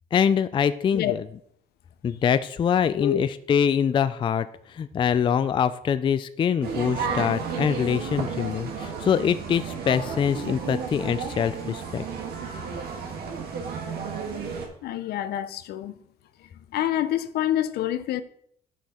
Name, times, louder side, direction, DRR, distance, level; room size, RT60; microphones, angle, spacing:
voice 1, 0.1-1.2 2.0-12.0, left 7 dB, 30° left, 13 dB, 0.3 m, -24 dB
sound 1, 6.6-14.7, right 6 dB, 70° right, 1.7 m, -32 dB
voice 2, 14.8-15.9 16.7-18.2, left 12 dB, 70° left, 12 dB, 0.6 m, -27 dB
8.3 x 6.3 x 4.2 m, 0.68 s
cardioid pair, 110°, 17 cm